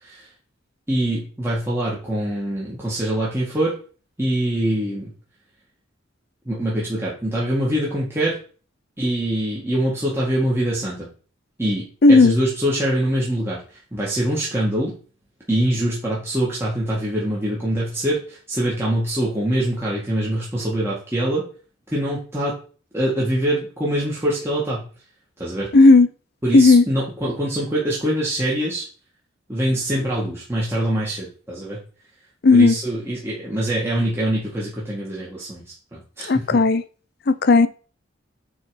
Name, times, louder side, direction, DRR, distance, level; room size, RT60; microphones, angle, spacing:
voice 1, 0.9-3.8 4.2-5.1 6.5-8.4 9.0-11.1 11.6-14.9 15.5-21.4 21.9-22.6 22.9-24.9 25.4-25.7 26.4-28.8 29.5-31.8 32.5-35.6 35.9-36.6, right 1 dB, 15° right, -6 dB, 1.9 m, -24 dB
voice 2, 12.0-12.3 25.7-26.1 26.5-26.8 32.4-32.7 36.3-36.8 37.3-37.7, left 3 dB, 55° left, 14 dB, 0.6 m, -12 dB
8.3 x 3.8 x 5.0 m, 0.39 s
head